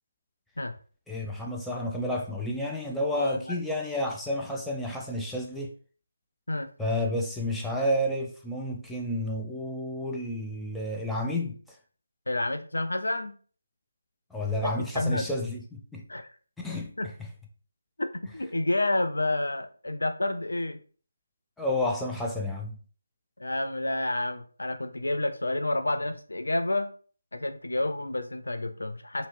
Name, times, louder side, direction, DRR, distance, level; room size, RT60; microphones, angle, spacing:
voice 1, 1.1-5.7 6.8-11.5 14.3-16.0 16.6-16.9 17.2-17.3 21.6-22.8, left 1 dB, ahead, 0.3 m, -30 dB
voice 2, 3.1-3.4 6.5-6.7 12.3-13.4 14.6-15.3 16.1-16.3 17.0-17.1 18.0-20.8 23.4-26.9 27.3-29.3, left 2 dB, 75° left, 0.3 m, -29 dB
2.8 x 2.7 x 2.6 m
figure-of-eight pair, 160°, 0 cm